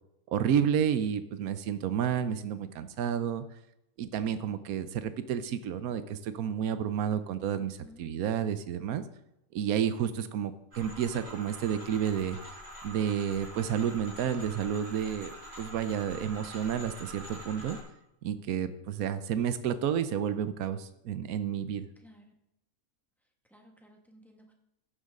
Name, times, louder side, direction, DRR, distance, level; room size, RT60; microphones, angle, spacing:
voice 1, 0.3-3.4 4.0-9.0 9.5-12.4 12.8-17.8 18.2-21.9, right 8 dB, 80° right, 12 dB, 1.2 m, -30 dB
voice 2, 7.6-8.1 22.0-22.3 23.5-24.5, left 1 dB, ahead, 1 dB, 1.8 m, -56 dB
sound 1, 10.7-17.8, right 1 dB, 45° right, 5.9 m, -45 dB
15.0 x 10.5 x 3.8 m, 0.85 s
omnidirectional pair, 1.5 m